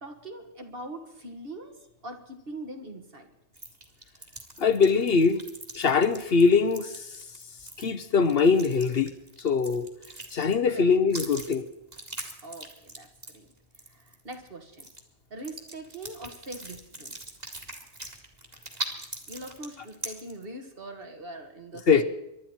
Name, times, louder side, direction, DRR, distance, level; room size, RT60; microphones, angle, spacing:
voice 1, 0.0-3.3 10.7-10.9 12.4-13.5 13.9-14.9 15.3-17.2 19.3-22.0, right 1 dB, 50° right, 1.9 m, -42 dB
sound 1, 3.5-10.7 11.1-14.5 14.7-15.0 15.4-20.4, right 2 dB, 35° right, 2.2 m, -41 dB
voice 2, 4.6-5.4 5.8-7.1 7.8-9.1 9.4-9.9 10.3-11.7 21.9-22.0, left 5 dB, 60° left, 1.0 m, -22 dB
24.5 x 12.0 x 4.4 m
omnidirectional pair, 1.2 m